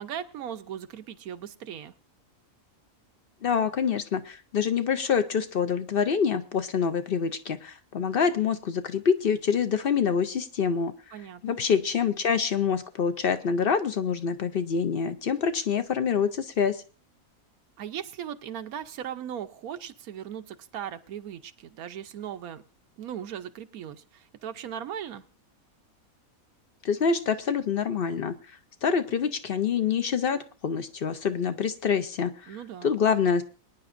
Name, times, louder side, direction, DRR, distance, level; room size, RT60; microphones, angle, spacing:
voice 1, 0.0-1.9 11.1-11.6 17.8-22.6 23.0-25.2 32.5-32.9, right 9 dB, 85° right, 10 dB, 1.2 m, -38 dB
voice 2, 3.4-10.9 11.4-16.8 26.8-28.3 28.8-32.6 32.8-33.4, left 6 dB, 55° left, 10 dB, 0.7 m, -26 dB
23.0 x 9.9 x 2.5 m, 0.37 s
omnidirectional pair, 1.5 m